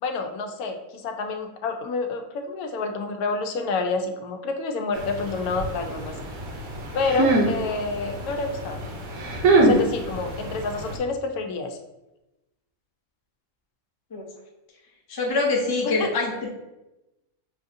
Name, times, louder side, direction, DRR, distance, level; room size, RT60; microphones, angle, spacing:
voice 1, 0.0-6.1 6.9-8.8 9.6-11.8 15.8-16.1, left 3 dB, 90° left, 5 dB, 1.1 m, -28 dB
sound 1, 4.9-11.0, right 2 dB, 75° right, 1.2 m, -25 dB
voice 2, 15.1-16.5, left 3 dB, 35° left, -1 dB, 0.3 m, -24 dB
6.1 x 2.4 x 2.6 m, 0.99 s
omnidirectional pair, 1.5 m